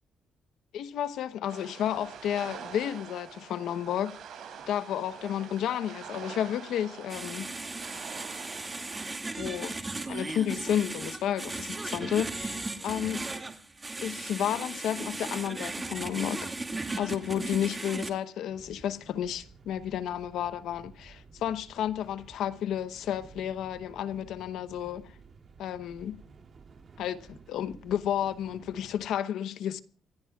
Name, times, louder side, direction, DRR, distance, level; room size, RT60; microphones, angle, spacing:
voice 1, 0.7-4.2 4.7-7.5 9.4-9.7 10.1-13.2 14.0-16.5 17.0-25.1 25.6-26.2 27.0-29.8, left 10 dB, 80° left, 0.9 m, -32 dB
sound 1, 1.5-9.2, right 7 dB, 75° right, 6.5 m, -45 dB
sound 2, 7.1-18.1, right 2 dB, 20° right, 2.2 m, -36 dB
sound 3, 18.5-29.1, right 5 dB, 45° right, 2.9 m, -53 dB
27.5 x 15.5 x 2.4 m
cardioid pair, 90°, 0 cm